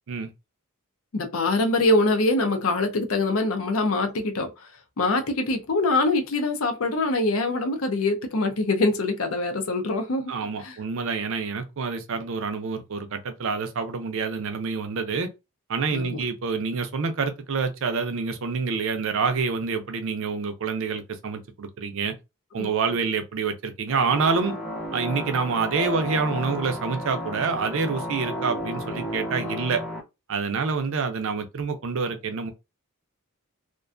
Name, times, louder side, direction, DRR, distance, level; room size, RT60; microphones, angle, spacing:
voice 1, 1.1-4.5 5.0-10.3 10.6-10.8 15.9-16.2 22.6-22.7, left 2 dB, 65° left, 0.5 m, -24 dB
voice 2, 10.3-15.3 15.7-22.1 22.5-24.6 24.9-29.8 30.3-32.5, right 5 dB, 60° right, 0.5 m, -27 dB
sound 1, 23.9-30.0, left 1 dB, ahead, 0.6 m, -33 dB
2.5 x 2.2 x 2.4 m
head